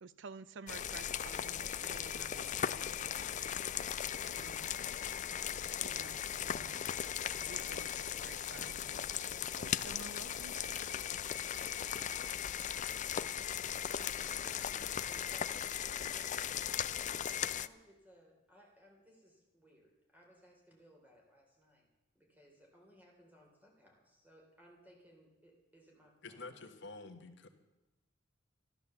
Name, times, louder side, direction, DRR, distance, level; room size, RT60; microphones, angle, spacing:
voice 1, 0.0-3.5 4.3-4.9 5.3-6.8 7.3-10.9, right 5 dB, 65° right, 15 dB, 0.5 m, -53 dB
sound 1, 0.7-17.7, left 9 dB, 40° left, 0.4 m, -38 dB
voice 2, 14.2-16.4 17.3-21.9 22.2-26.7, equal, 10° right, 0 dB, 3.3 m, -62 dB
voice 3, 26.2-27.5, left 3 dB, 65° left, 6 dB, 1.4 m, -49 dB
13.5 x 12.5 x 6.9 m, 1.0 s
head